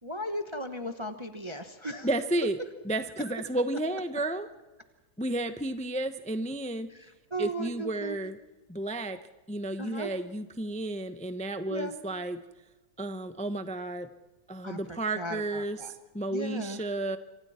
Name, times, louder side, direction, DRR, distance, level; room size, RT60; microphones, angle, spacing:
voice 1, 0.0-2.1 6.9-8.2 9.8-10.1 11.7-12.0 14.6-15.9 16.3-16.8, right 1 dB, 20° right, 7 dB, 1.1 m, -37 dB
voice 2, 2.0-2.6 2.8-4.5 5.2-6.9 7.4-8.4 8.7-9.2 9.5-12.4 13.0-14.1 14.5-17.2, right 1 dB, 10° left, 9 dB, 0.4 m, -32 dB
27.0 x 25.0 x 4.4 m, 1.2 s
omnidirectional pair, 1.9 m